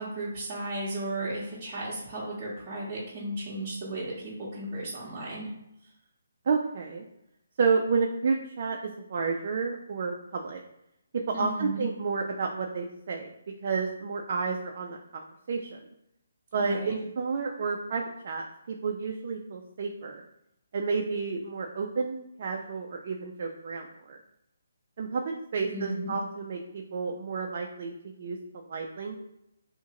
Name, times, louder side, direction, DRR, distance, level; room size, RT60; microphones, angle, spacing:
voice 1, 0.0-5.5 11.3-11.8 16.6-16.9 25.7-26.1, right 1 dB, 25° right, -9 dB, 0.8 m, -35 dB
voice 2, 6.5-7.0 7.6-8.8 9.1-10.6 11.3-13.3 13.6-15.2 15.5-15.8 16.5-20.2 20.7-24.2 25.0-29.2, right 4 dB, 50° right, 2 dB, 0.3 m, -31 dB
2.8 x 2.5 x 2.8 m, 0.83 s
hypercardioid pair, 155°, 0 cm